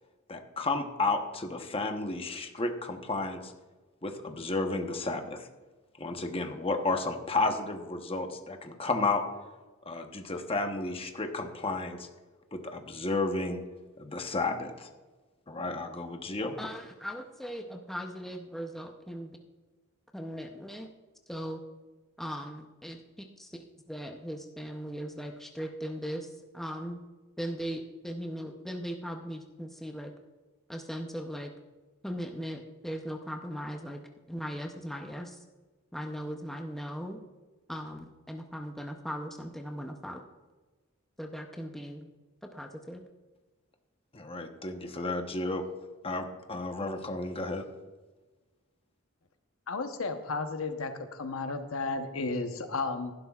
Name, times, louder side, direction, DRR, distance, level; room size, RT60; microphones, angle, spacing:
voice 1, 0.3-3.5 4.0-5.5 6.0-9.2 9.9-12.1 12.5-13.6 14.0-14.9 15.5-16.5 44.1-45.6 46.0-47.6, left 3 dB, 25° left, 5 dB, 0.9 m, -32 dB
voice 2, 16.6-19.4 20.1-20.9 21.3-21.6 22.2-27.0 27.4-30.1 30.7-31.5 32.0-34.0 34.3-35.4 35.9-37.2 37.7-40.2 41.2-42.1 42.4-43.0, equal, ahead, 3 dB, 0.6 m, -39 dB
voice 3, 49.7-53.1, left 3 dB, 70° left, 7 dB, 0.9 m, -33 dB
16.0 x 12.0 x 2.4 m, 1.3 s
head